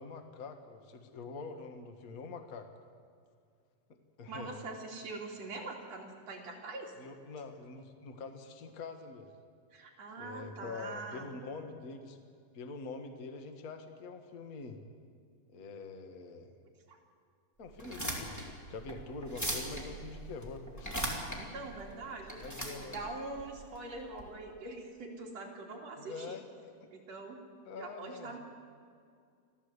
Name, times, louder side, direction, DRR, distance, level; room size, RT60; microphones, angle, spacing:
voice 1, 0.0-2.7 4.2-4.7 7.0-9.3 10.2-12.2 12.5-14.8 15.5-16.5 17.6-21.0 22.4-22.9 26.0-26.9 27.6-28.4, left 4 dB, 45° left, 6 dB, 1.2 m, -45 dB
voice 2, 4.3-7.0 9.7-11.3 16.9-17.0 21.3-22.4 22.8-26.4 26.9-27.4 27.8-28.4, right 3 dB, 50° right, -1 dB, 3.8 m, -43 dB
sound 1, 17.7-24.2, right 1 dB, 5° left, 2.6 m, -40 dB
26.0 x 15.0 x 8.2 m, 2.3 s
omnidirectional pair, 3.9 m